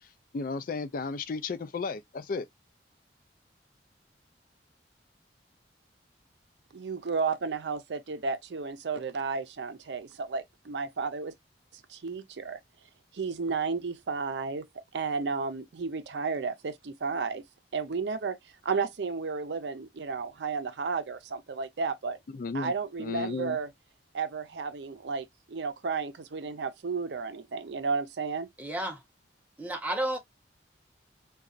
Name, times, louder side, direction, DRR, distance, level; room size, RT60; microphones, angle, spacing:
voice 1, 0.3-2.5 22.3-22.7 23.0-23.6, left 4 dB, 50° left, 0.4 m, -33 dB
voice 2, 6.7-11.3 11.9-12.6 13.1-14.7 14.9-17.4 17.7-18.4 18.6-22.2 22.5-23.7 24.1-28.5, right 5 dB, 75° right, 0.5 m, -32 dB
voice 3, 28.6-29.0 29.6-30.2, right 1 dB, 10° right, 0.7 m, -31 dB
4.0 x 2.3 x 2.3 m
head